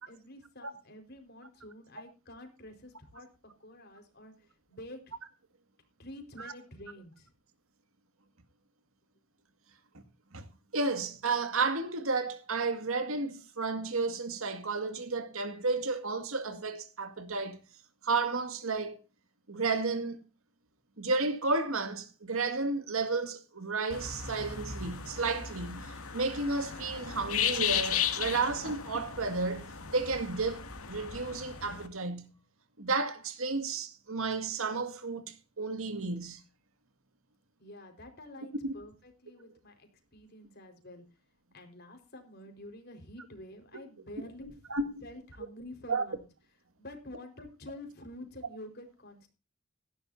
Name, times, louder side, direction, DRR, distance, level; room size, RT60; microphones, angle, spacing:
voice 1, 0.0-3.3 3.6-5.0 6.0-7.3 37.6-41.0 41.5-44.7 45.0-46.3 46.8-49.3, left 1 dB, 45° left, 4.8 m, -48 dB
voice 2, 10.7-17.6 18.0-19.0 19.5-20.2 21.0-32.3 32.8-36.4 38.6-38.7 44.7-44.9 45.9-46.1, right 3 dB, 70° right, 2.1 m, -32 dB
sound 1, 23.9-31.9, left 8 dB, 80° left, 2.4 m, -35 dB
17.0 x 15.0 x 2.8 m
head